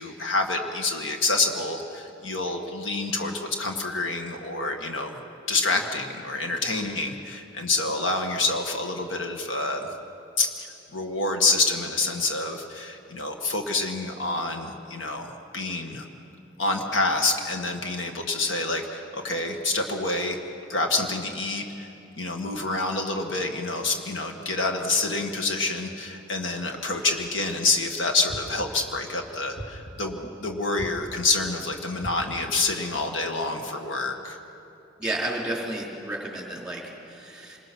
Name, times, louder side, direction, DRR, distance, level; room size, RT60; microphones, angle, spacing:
voice 1, 0.0-5.2 5.5-9.9 10.4-16.0 16.6-20.4 20.7-21.9 22.2-34.4, left 3 dB, 75° left, 3 dB, 1.8 m, -27 dB
sound 1, 28.3-28.9 29.6-30.2 30.8-31.4 32.0-32.7, right 1 dB, 30° left, 2.6 m, -40 dB
voice 2, 35.0-37.6, right 1 dB, 5° right, -2 dB, 4.0 m, -32 dB
27.0 x 21.0 x 6.2 m, 2.8 s
head